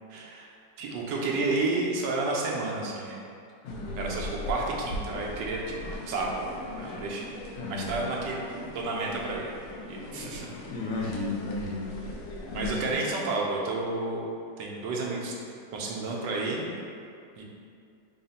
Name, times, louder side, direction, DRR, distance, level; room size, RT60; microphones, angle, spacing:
voice 1, 0.1-0.5 0.8-3.3 4.0-5.6 6.1-7.2 7.7-8.4 8.7-9.5 9.9-10.5 12.5-14.2 14.6-15.4 15.7-16.7 17.4-17.5, right 3 dB, 80° right, -2 dB, 1.2 m, -31 dB
sound 1, 3.6-12.9, left 1 dB, 85° left, 1.2 m, -40 dB
voice 2, 3.6-4.2 7.3-8.1 10.7-11.9 12.5-12.9, left 2 dB, 65° left, -4 dB, 1.0 m, -34 dB
3.7 x 2.1 x 4.0 m, 2.4 s
omnidirectional pair, 1.9 m